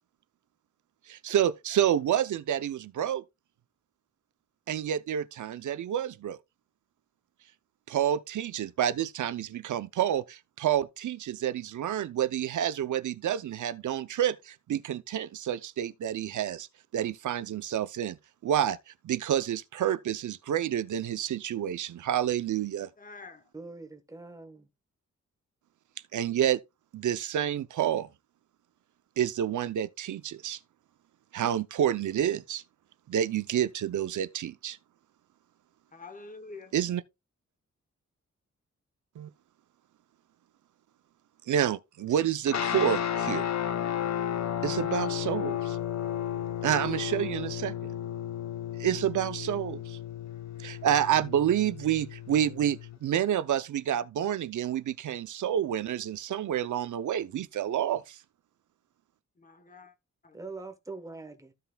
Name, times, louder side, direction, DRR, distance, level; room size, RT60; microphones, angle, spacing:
voice 1, 1.1-3.2 4.7-6.4 7.9-16.7 16.9-18.2 18.4-18.8 19.0-22.9 26.1-26.6 26.9-28.1 29.2-30.6 31.3-32.6 33.1-34.8 36.7-37.0 39.2-39.3 41.5-43.4 44.6-45.8 46.6-47.9 48.8-50.0 50.6-58.2, right 10 dB, 85° right, 0.6 m, -29 dB
voice 2, 23.0-23.4 35.9-36.7 59.4-59.9 60.2-60.4, left 3 dB, 30° left, 1.0 m, -46 dB
voice 3, 23.5-24.7 60.3-61.5, right 3 dB, 10° right, 1.2 m, -43 dB
sound 1, 42.5-53.0, left 10 dB, 65° left, 0.9 m, -33 dB
15.0 x 5.6 x 2.3 m
wide cardioid pair, 175°, 29 cm